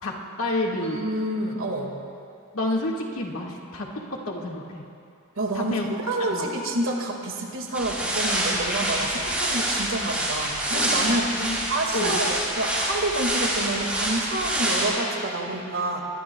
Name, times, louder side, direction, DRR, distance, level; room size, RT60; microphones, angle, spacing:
voice 1, 0.0-1.0 2.5-4.8 5.5-5.9 6.3-6.5 10.7-11.0 11.4-11.6 11.9-12.3, left 1 dB, 70° left, -1 dB, 1.9 m, -29 dB
voice 2, 0.9-1.9 5.4-16.0, right 1 dB, 65° right, 1 dB, 2.0 m, -28 dB
sound 1, 7.7-14.9, right 1 dB, 5° right, 3.6 m, -26 dB
23.0 x 20.0 x 2.3 m, 2.6 s
head